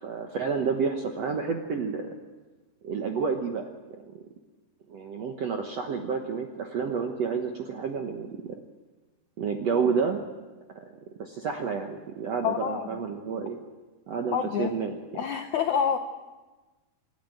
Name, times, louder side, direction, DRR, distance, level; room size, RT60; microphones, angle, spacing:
voice 1, 0.0-2.1 2.8-3.7 4.9-8.6 9.4-10.2 10.7-10.8 11.2-13.6 14.1-14.9, right 5 dB, 70° right, 3 dB, 1.5 m, -30 dB
voice 2, 12.4-13.0 14.3-14.7 15.1-16.0, left 7 dB, 80° left, 6 dB, 1.7 m, -27 dB
27.0 x 12.0 x 9.1 m, 1.2 s
omnidirectional pair, 4.6 m